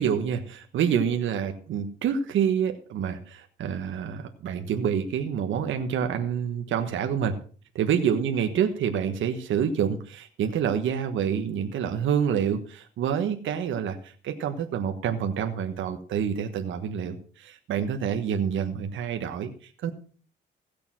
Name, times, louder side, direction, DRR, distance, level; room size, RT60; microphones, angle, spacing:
voice 1, 0.0-7.3 7.7-19.9, right 8 dB, 75° right, 6 dB, 1.4 m, -27 dB
16.5 x 6.9 x 6.1 m, 0.41 s
cardioid pair, 90°, 20 cm